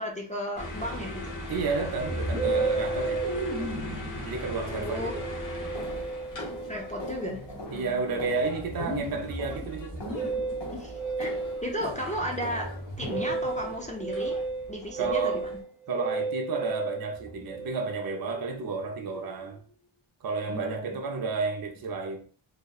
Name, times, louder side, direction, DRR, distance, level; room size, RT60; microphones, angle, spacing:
voice 1, 0.0-1.4 4.7-5.1 6.7-7.4 10.7-11.3 11.6-12.7 13.0-14.4 14.7-15.6 20.5-21.0, equal, 15° left, 0.3 m, -34 dB
sound 1, 0.6-15.6, left 1 dB, 40° left, 0.7 m, -41 dB
voice 2, 1.5-3.3 4.2-5.3 7.7-10.1 15.0-15.5 15.9-19.6 20.2-22.2, right 4 dB, 50° right, 0.5 m, -31 dB
Musical instrument, 2.0-19.6, right 3 dB, 5° right, 0.7 m, -34 dB
sound 2, 5.1-14.3 14.8-15.2 15.4-15.7 16.0-16.2 16.7-16.8 17.3-17.4, equal, 65° left, 0.9 m, -43 dB
2.7 x 2.1 x 2.3 m
wide cardioid pair, 75°, 49 cm